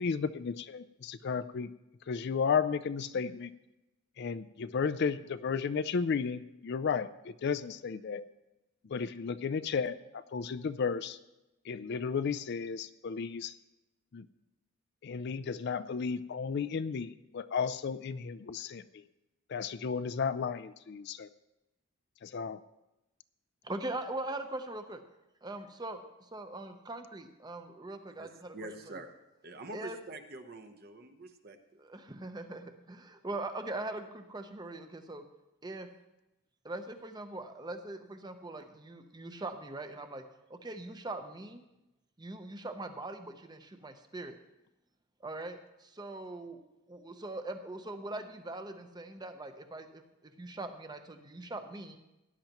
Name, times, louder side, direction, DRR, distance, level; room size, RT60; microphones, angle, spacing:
voice 1, 0.0-1.7 2.1-3.5 4.2-8.2 8.9-11.2 11.7-13.5 14.1-14.3 15.0-19.0 19.5-21.3 22.2-22.6, left 6 dB, 50° left, 14 dB, 0.4 m, -33 dB
voice 2, 23.6-25.0 25.4-26.0 26.3-28.5 28.9-29.0 29.7-30.0 31.8-35.2 35.6-35.9 36.6-40.2 40.5-41.6 42.2-44.4 45.2-46.6 46.9-52.0, right 2 dB, 20° right, 7 dB, 0.8 m, -41 dB
voice 3, 28.1-29.2 29.4-31.6, right 2 dB, 45° right, 7 dB, 0.9 m, -46 dB
17.0 x 10.5 x 3.0 m, 0.95 s
head